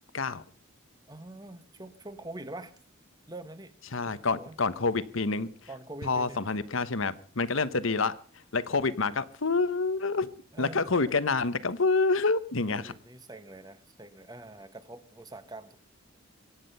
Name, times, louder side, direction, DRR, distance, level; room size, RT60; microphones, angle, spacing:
voice 1, 1.1-2.7 3.3-3.7 4.0-4.6 5.7-6.6 10.5-11.4 12.7-15.8, right 2 dB, 20° right, 11 dB, 1.2 m, -45 dB
voice 2, 3.9-5.5 6.0-10.3 10.6-12.9, left 3 dB, 70° left, 15 dB, 1.0 m, -28 dB
24.0 x 10.0 x 5.6 m, 0.43 s
head